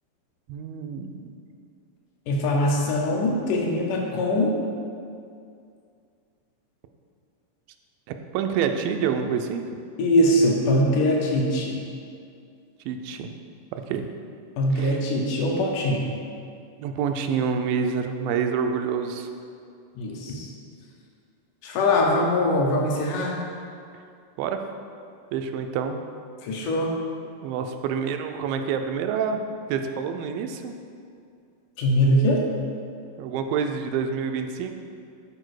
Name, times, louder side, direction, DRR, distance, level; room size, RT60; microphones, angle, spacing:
voice 1, 0.5-1.4 8.3-9.8 12.9-13.3 13.7-14.1 14.7-15.0 16.8-19.3 24.4-24.6 25.3-26.0 27.4-29.4 29.7-30.7 33.2-34.7, right 6 dB, 90° right, 6 dB, 2.3 m, -27 dB
voice 2, 2.3-4.6 10.0-11.8 14.6-16.2 20.0-20.5 21.6-23.4 26.4-27.0 31.8-32.4, left 1 dB, 75° left, -1 dB, 2.1 m, -22 dB
8.8 x 4.3 x 4.8 m, 2.4 s
omnidirectional pair, 4.0 m